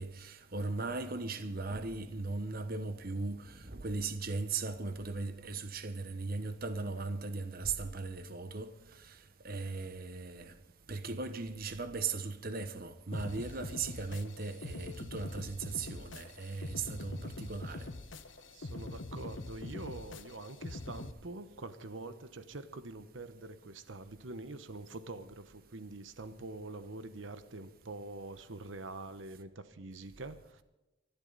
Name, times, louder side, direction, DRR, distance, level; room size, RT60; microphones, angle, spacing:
voice 1, 0.0-8.7 9.0-9.2 9.4-10.5 10.9-17.9, right 3 dB, 50° right, 1.1 m, -38 dB
sound 1, 13.1-21.1, left 2 dB, 75° left, 1.1 m, -44 dB
voice 2, 18.5-30.6, right 2 dB, 70° right, 1.1 m, -45 dB
24.5 x 12.0 x 4.0 m
head